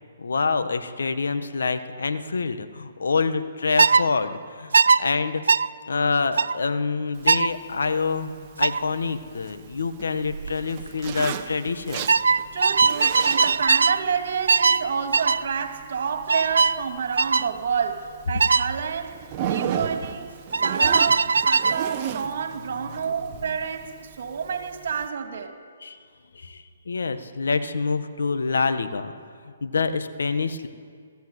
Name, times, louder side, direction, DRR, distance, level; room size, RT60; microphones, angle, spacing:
voice 1, 0.2-5.4 5.9-8.3 8.6-12.1 22.9-23.0 25.8-26.0 26.3-29.1 29.6-30.7, left 4 dB, 85° left, 9 dB, 1.6 m, -26 dB
sound 1, 3.8-4.0 4.7-5.0 5.5-5.7 6.4-6.6 7.3-7.5 8.6-8.8 10.3-10.5 10.8-11.2 12.1-14.0 14.5-14.8 15.1-15.4 16.3-16.8 17.2-17.5 18.4-18.7 20.5-21.8, right 5 dB, 85° right, 0.5 m, -19 dB
Zipper (clothing), 7.1-25.1, right 9 dB, 30° right, 1.3 m, -37 dB
voice 2, 12.5-25.5, right 6 dB, 65° right, 6 dB, 2.5 m, -29 dB
22.5 x 14.5 x 8.2 m, 2.1 s
hypercardioid pair, 150°, 0 cm